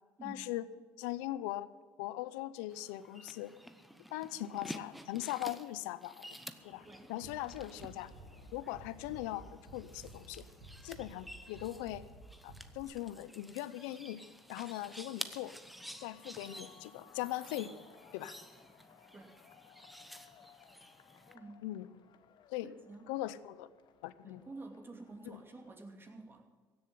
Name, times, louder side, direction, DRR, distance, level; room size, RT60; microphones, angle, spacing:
voice 1, 0.2-0.6 1.0-1.7 2.0-3.5 4.1-6.3 6.6-8.1 8.5-10.4 10.8-12.0 12.4-14.2 14.5-15.6 16.0-17.7 18.1-18.3 21.6-21.9 22.5-22.7 23.1-23.7 24.0-24.4 25.3-25.4, left 15 dB, 85° left, 16 dB, 0.6 m, -40 dB
sound 1, 2.7-21.4, equal, ahead, 0.9 m, -51 dB
sound 2, 6.6-25.8, left 8 dB, 55° left, 1.1 m, -63 dB
Bass drum, 7.2-12.8, right 2 dB, 80° right, 2.5 m, -53 dB
voice 2, 21.3-21.7 22.6-23.1 24.2-26.5, right 3 dB, 25° right, 2 dB, 2.7 m, -50 dB
16.0 x 7.2 x 9.5 m, 1.5 s
supercardioid pair, 90°, 9 cm